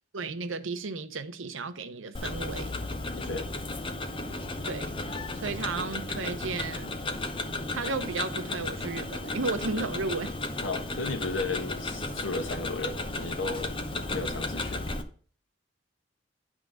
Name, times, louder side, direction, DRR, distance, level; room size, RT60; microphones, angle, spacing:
voice 1, 0.1-2.8 4.6-5.0 5.3-7.0 7.7-10.3, right 3 dB, 90° right, 0.8 m, -34 dB
Tick-tock, 2.1-15.0, left 2 dB, 25° left, 0.7 m, -34 dB
voice 2, 3.1-3.5 10.6-13.8 14.1-14.9, left 3 dB, 90° left, 1.3 m, -34 dB
10.5 x 3.8 x 6.2 m
head